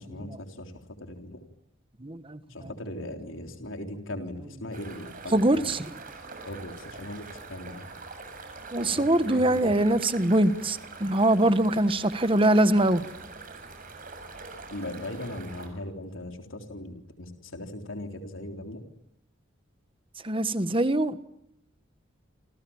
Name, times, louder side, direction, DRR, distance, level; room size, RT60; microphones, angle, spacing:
voice 1, 0.0-1.4 2.5-5.6 6.5-7.9 8.8-9.8 14.7-18.8, left 1 dB, 80° left, 5 dB, 3.8 m, -39 dB
voice 2, 2.0-2.7 5.3-5.9 8.7-13.0 20.2-21.2, right 1 dB, 25° right, 12 dB, 1.5 m, -23 dB
sound 1, 4.7-15.7, right 3 dB, 45° right, 7.9 m, -44 dB
28.5 x 28.0 x 7.3 m, 0.78 s
head